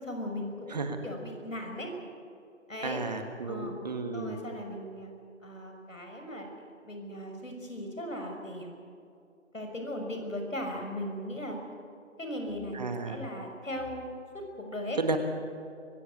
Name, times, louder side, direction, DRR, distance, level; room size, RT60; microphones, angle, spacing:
voice 1, 0.0-1.9 2.7-3.0 3.5-3.8 4.1-5.1 5.4-6.5 6.8-8.8 9.5-11.6 12.2-15.0, left 1 dB, 75° left, 3 dB, 6.1 m, -38 dB
voice 2, 0.7-1.0 2.8-4.4 12.7-13.2 15.0-15.2, right 3 dB, 30° right, 6 dB, 1.6 m, -33 dB
25.0 x 16.5 x 8.4 m, 2.6 s
figure-of-eight pair, 155°, 39 cm